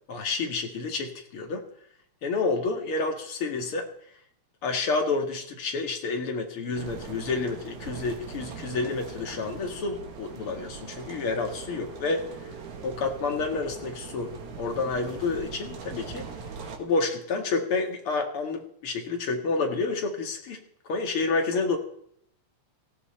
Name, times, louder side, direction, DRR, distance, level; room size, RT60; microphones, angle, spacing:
voice 1, 0.1-1.6 2.2-3.9 4.6-12.2 12.8-14.3 14.6-16.3 16.8-21.8, left 3 dB, 50° left, 3 dB, 2.8 m, -29 dB
sound 1, 6.8-16.8, right 5 dB, 80° right, 3.3 m, -41 dB
18.0 x 15.5 x 4.4 m, 0.68 s
omnidirectional pair, 3.3 m